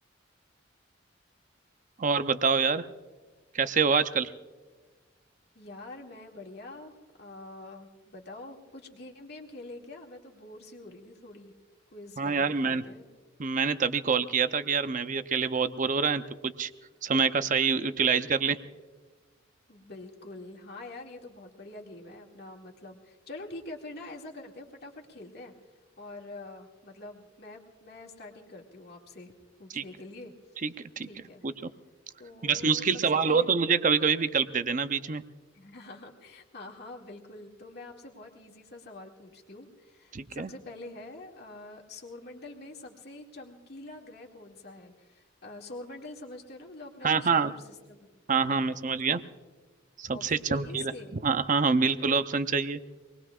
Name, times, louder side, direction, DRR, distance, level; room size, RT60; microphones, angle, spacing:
voice 1, 2.0-2.8 3.5-4.3 12.2-12.8 13.4-16.7 17.0-18.6 29.7-29.8 30.6-31.1 31.4-31.7 32.4-35.2 40.1-40.5 47.0-47.5 48.3-49.2 50.0-50.9 51.2-52.8, right 5 dB, 40° right, 11 dB, 0.6 m, -26 dB
voice 2, 5.5-11.5 11.9-13.1 19.7-25.5 26.0-29.3 29.6-30.3 31.0-31.4 32.2-33.5 35.5-48.8 50.1-51.1, left 2 dB, 55° left, 0 dB, 2.2 m, -45 dB
26.0 x 20.5 x 2.4 m, 1.4 s
head